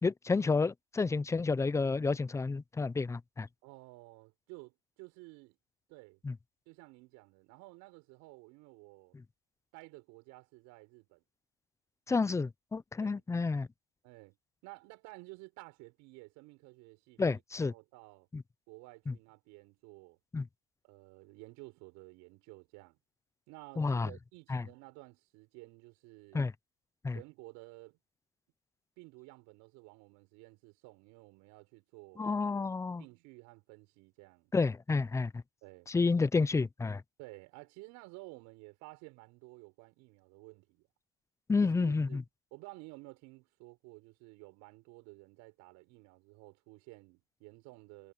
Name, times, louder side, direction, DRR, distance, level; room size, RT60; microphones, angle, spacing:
voice 1, 0.0-3.5 6.2-6.3 12.1-13.7 17.2-17.7 18.3-18.4 19.1-19.2 20.3-20.5 23.8-24.1 24.5-24.6 26.3-26.5 27.0-27.2 32.2-33.0 34.5-35.3 35.9-37.0 41.5-42.2, left 4 dB, 10° left, 0.5 m, -30 dB
voice 2, 3.6-5.6 5.9-6.2 6.7-9.1 9.7-11.2 13.0-13.2 14.0-14.3 14.6-18.3 18.7-20.2 20.8-23.0 23.5-26.5 27.1-28.0 29.0-32.3 33.0-34.5 35.6-35.9 37.2-40.8 41.6-42.2 42.5-48.1, right 24 dB, 70° right, 6.8 m, -53 dB
supercardioid pair, 115°, 30 cm